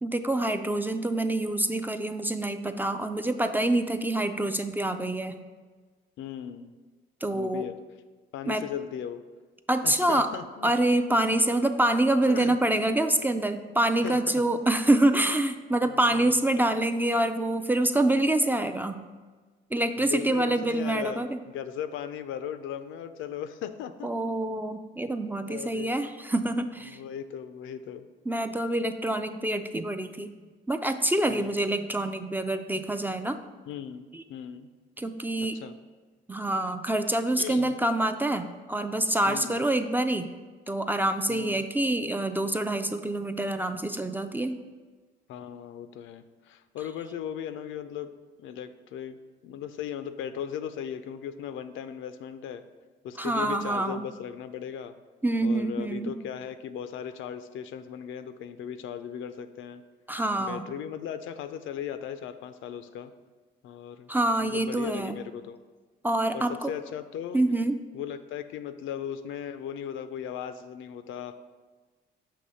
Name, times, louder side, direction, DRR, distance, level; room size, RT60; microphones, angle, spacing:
voice 1, 0.0-5.4 7.2-7.7 8.5-8.7 9.7-10.3 10.6-19.0 19.7-21.4 24.0-27.0 28.3-30.3 30.7-33.4 34.1-34.2 35.0-35.6 36.3-40.3 40.7-44.6 53.2-54.1 55.2-56.1 60.1-60.7 64.1-65.2 66.0-66.7 67.3-67.8, right 1 dB, 10° right, 7 dB, 0.3 m, -26 dB
voice 2, 6.2-6.7 7.3-7.8 8.3-9.2 9.8-10.7 12.3-12.6 14.0-14.4 15.9-16.3 20.0-21.3 21.5-24.1 25.5-25.9 26.9-28.1 31.3-31.6 33.7-34.0 34.3-34.7 35.4-35.7 37.4-37.7 39.3-39.6 41.3-41.6 45.3-48.1 48.4-49.2 49.4-52.6 53.0-54.9 55.4-59.8 60.4-63.1 63.6-64.1 64.4-65.6 66.3-67.4 67.9-71.4, left 9 dB, 80° left, 11 dB, 0.4 m, -37 dB
6.5 x 3.0 x 5.4 m, 1.3 s
cardioid pair, 90°, 20 cm